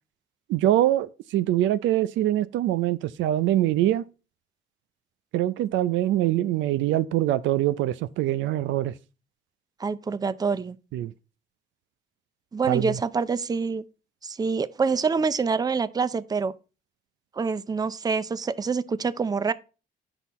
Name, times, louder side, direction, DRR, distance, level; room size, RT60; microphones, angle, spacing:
voice 1, 0.5-4.0 5.3-8.9 10.9-11.1 12.7-13.0, right 13 dB, 85° right, 0.5 m, -24 dB
voice 2, 9.8-10.8 12.5-13.8 14.2-16.5 17.4-19.5, right 5 dB, 20° right, 0.5 m, -26 dB
8.0 x 5.9 x 4.1 m
cardioid pair, 95°, 19 cm